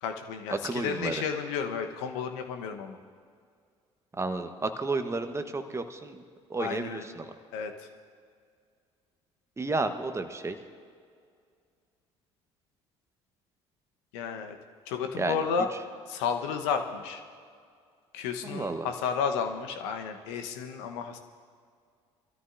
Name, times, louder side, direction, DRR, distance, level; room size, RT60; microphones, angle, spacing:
voice 1, 0.0-3.0 6.6-7.0 7.5-7.9 14.1-14.6 14.9-15.7 16.1-17.2 18.1-21.2, left 6 dB, 70° left, 6 dB, 1.1 m, -32 dB
voice 2, 0.6-1.2 4.2-6.2 6.5-7.3 9.6-10.6 15.1-15.4 18.4-18.9, right 3 dB, 20° right, 8 dB, 1.2 m, -32 dB
24.5 x 13.5 x 2.6 m, 2.2 s
hypercardioid pair, 60°, 15 cm